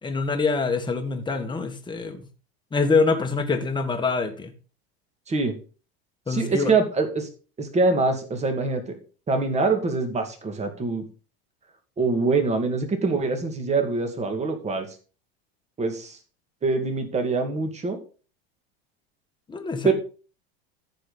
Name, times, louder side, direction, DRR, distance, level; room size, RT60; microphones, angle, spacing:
voice 1, 0.0-2.2 2.7-4.5 6.3-6.7 19.5-19.9, left 4 dB, 15° left, 5 dB, 1.6 m, -25 dB
voice 2, 6.3-7.3 7.6-8.9 9.3-11.0 12.0-14.9 15.8-16.2 16.6-18.0 19.8-19.9, right 3 dB, 20° right, 5 dB, 2.3 m, -24 dB
14.0 x 5.3 x 4.1 m, 0.36 s
supercardioid pair, 125°, 31 cm